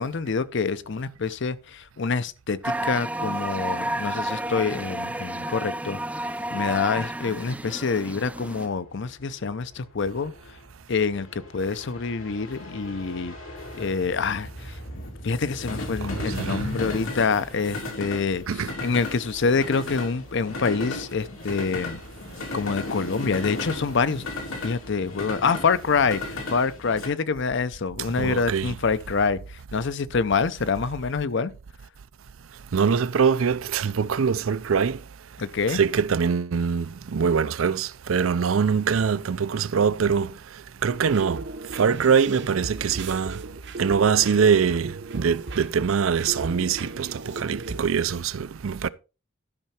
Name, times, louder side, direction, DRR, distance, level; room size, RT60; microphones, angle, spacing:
voice 1, 0.0-6.0 6.5-10.3 10.9-13.4 13.7-14.8 15.2-22.0 22.5-24.2 24.6-31.5 35.4-35.8, left 5 dB, 60° left, 0.6 m, -26 dB
sound 1, 2.6-8.7, right 1 dB, 5° right, 0.4 m, -31 dB
sound 2, 7.6-27.1, left 2 dB, 85° left, 2.9 m, -36 dB
voice 2, 16.0-16.7 18.5-18.7 28.2-28.7 32.7-35.0 35.7-40.3 40.8-41.4 41.8-43.4 43.8-48.9, right 6 dB, 80° right, 0.5 m, -23 dB
sound 3, 40.8-47.9, right 3 dB, 60° right, 0.8 m, -37 dB
12.5 x 5.7 x 4.3 m
head